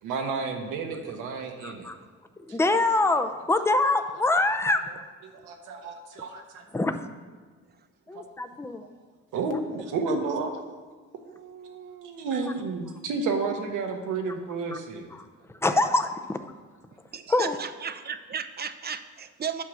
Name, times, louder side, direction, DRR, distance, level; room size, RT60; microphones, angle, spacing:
voice 1, 0.0-1.9 2.5-2.6 5.2-6.6 8.1-8.2 9.3-10.6 11.1-15.1, right 4 dB, 90° right, 3 dB, 1.2 m, -31 dB
voice 2, 1.6-1.9 2.5-4.8 6.7-6.9 8.1-8.8 14.7-14.8 15.1-15.2 15.6-16.4 17.3-17.6, left 2 dB, 10° left, 8 dB, 0.6 m, -24 dB
voice 3, 17.1-19.6, right 7 dB, 35° right, 11 dB, 0.6 m, -34 dB
8.2 x 5.7 x 6.3 m, 1.4 s
cardioid pair, 90°, 30 cm